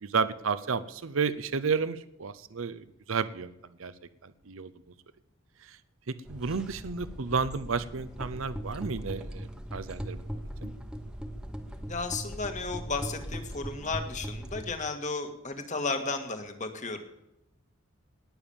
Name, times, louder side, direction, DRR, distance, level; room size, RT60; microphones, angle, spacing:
voice 1, 0.0-3.5 3.8-3.9 4.2-4.7 5.6-5.8 6.3-10.7, right 5 dB, 75° right, 14 dB, 0.7 m, -32 dB
sound 1, 6.3-14.7, equal, 5° right, 1.2 m, -39 dB
voice 2, 11.9-17.0, left 3 dB, 35° left, 6 dB, 1.9 m, -34 dB
19.5 x 7.1 x 7.2 m, 0.88 s
head